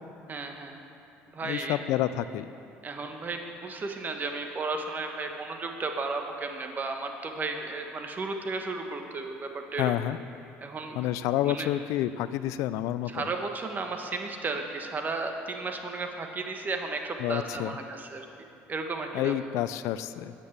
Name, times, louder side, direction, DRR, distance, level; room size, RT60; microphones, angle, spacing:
voice 1, 0.3-0.8 1.3-1.8 2.8-9.9 10.6-11.0 11.4-11.7 13.1-18.3 18.7-19.3, right 3 dB, 35° right, 4 dB, 1.3 m, -34 dB
voice 2, 1.4-2.5 9.8-10.2 11.0-13.3 17.2-17.7 19.1-20.3, left 13 dB, 75° left, 14 dB, 0.4 m, -29 dB
10.0 x 8.3 x 7.3 m, 2.7 s
supercardioid pair, 90°, 5 cm